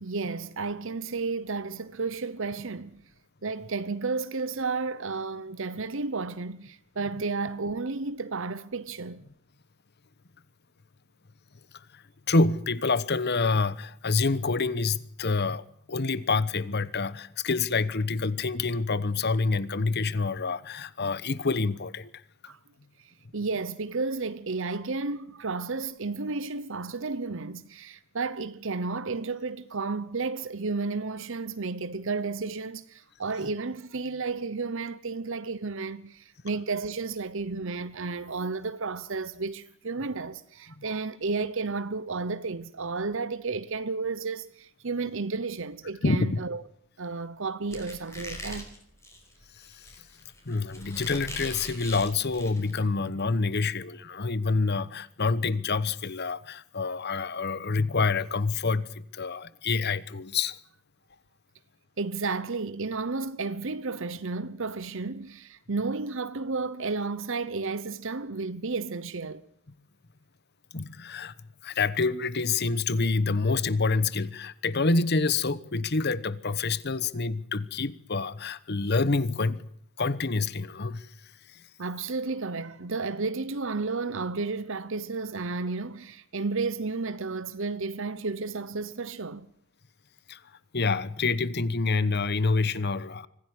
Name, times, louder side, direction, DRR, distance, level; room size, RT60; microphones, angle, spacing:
voice 1, 0.0-3.0 3.4-9.2 22.5-22.6 23.3-46.6 47.0-48.7 62.0-69.4 81.8-89.5, right 4 dB, 60° right, 0.9 m, -32 dB
voice 2, 12.3-15.6 15.9-22.1 46.0-46.4 49.6-49.9 50.4-60.6 70.7-71.3 71.6-79.6 80.0-81.1 90.3-90.4 90.7-93.3, left 4 dB, 50° left, 1.1 m, -27 dB
Squeak, 47.7-52.8, left 1 dB, 15° left, 5.0 m, -41 dB
25.0 x 15.5 x 9.9 m
head